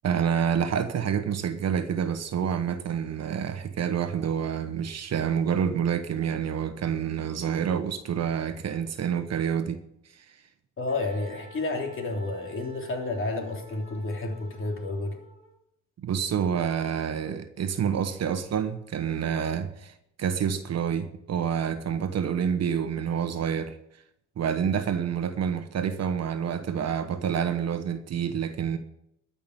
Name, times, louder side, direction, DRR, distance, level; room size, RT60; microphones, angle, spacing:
voice 1, 0.0-9.8 10.1-10.2 16.0-19.9 20.2-23.8 24.4-28.8, right 8 dB, 55° right, 1.2 m, -28 dB
voice 2, 10.8-15.2, left 2 dB, 45° left, 3.1 m, -31 dB
Wind instrument woodwind instrument, 10.9-15.5, equal, 20° right, 3.8 m, -51 dB
12.5 x 5.8 x 9.2 m
cardioid pair, 90°, 30 cm